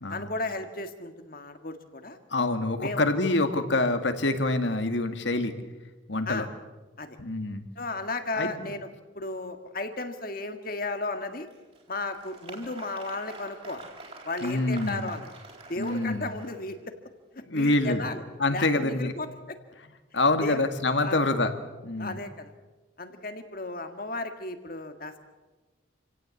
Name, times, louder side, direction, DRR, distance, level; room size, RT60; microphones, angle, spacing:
voice 1, 0.1-2.2 2.8-3.0 6.3-6.5 7.0-7.2 7.8-8.9 9.2-11.5 11.9-13.8 14.2-15.3 15.7-16.9 17.3-18.2 18.5-19.6 20.4-20.7 21.0-21.3 22.0-22.5 23.0-25.2, left 2 dB, 45° left, 7 dB, 1.8 m, -34 dB
voice 2, 2.3-5.5 6.1-6.5 7.2-7.6 8.4-8.5 14.4-15.1 15.8-16.3 17.5-18.1 18.4-19.1 20.1-21.5 21.8-22.2, left 2 dB, 70° left, 8 dB, 2.0 m, -26 dB
Applause, 11.5-16.8, right 3 dB, 30° right, 4.2 m, -46 dB
27.5 x 17.0 x 8.3 m, 1.2 s
head